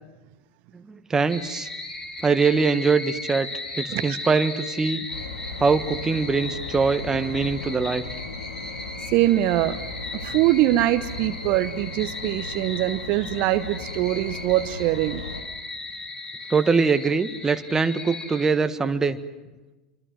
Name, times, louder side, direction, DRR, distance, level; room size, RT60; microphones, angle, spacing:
voice 1, 0.7-1.7 2.2-3.5 3.8-5.0 5.6-8.0 16.5-19.2, right 4 dB, 15° right, 9 dB, 1.5 m, -22 dB
sound 1, 1.3-18.5, left 2 dB, 20° left, 3.2 m, -36 dB
sound 2, 5.1-15.4, left 3 dB, 80° left, 2.5 m, -37 dB
voice 2, 9.1-9.8 10.2-15.2, right 15 dB, 50° right, 12 dB, 1.0 m, -23 dB
27.0 x 25.0 x 7.8 m, 1.1 s
figure-of-eight pair, 85°, 4 cm